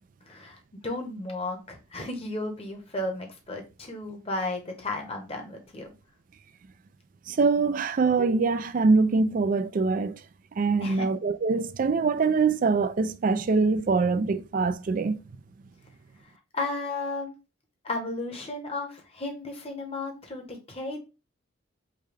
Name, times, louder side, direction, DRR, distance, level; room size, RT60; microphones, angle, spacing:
voice 1, 0.3-5.9 10.8-11.1 16.5-17.3 17.8-21.0, left 2 dB, 30° left, 0.9 m, -34 dB
voice 2, 7.3-10.2 10.6-15.2, right 4 dB, 40° right, 0.3 m, -24 dB
5.0 x 2.2 x 3.3 m
head